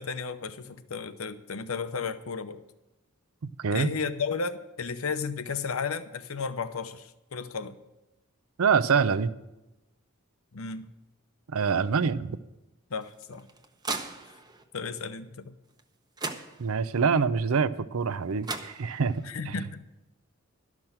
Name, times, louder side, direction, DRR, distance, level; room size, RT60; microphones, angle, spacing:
voice 1, 0.0-2.6 3.7-7.8 10.5-10.9 12.9-13.5 14.7-15.5 19.2-19.8, left 5 dB, 80° left, 11 dB, 0.8 m, -33 dB
voice 2, 3.6-3.9 8.6-9.3 11.5-12.4 16.6-19.1 19.5-19.6, right 5 dB, 80° right, 14 dB, 0.5 m, -25 dB
sound 1, 13.0-14.6 15.8-15.9 16.2-17.0 18.1-18.2 18.4-19.3, right 3 dB, 20° right, 0.8 m, -37 dB
12.0 x 6.1 x 8.6 m, 0.98 s
head